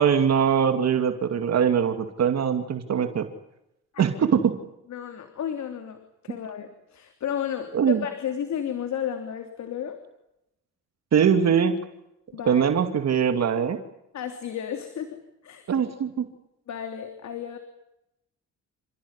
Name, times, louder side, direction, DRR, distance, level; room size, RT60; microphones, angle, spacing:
voice 1, 0.0-3.3 4.0-4.5 7.7-8.0 11.1-11.7 12.5-13.8 15.7-16.3, right 7 dB, 60° right, 8 dB, 2.6 m, -22 dB
voice 2, 4.9-6.0 6.2-10.0 12.3-12.6 14.1-15.7 16.7-17.6, left 9 dB, 65° left, 7 dB, 3.2 m, -33 dB
30.0 x 16.5 x 10.0 m, 0.85 s
cardioid pair, 90°, 30 cm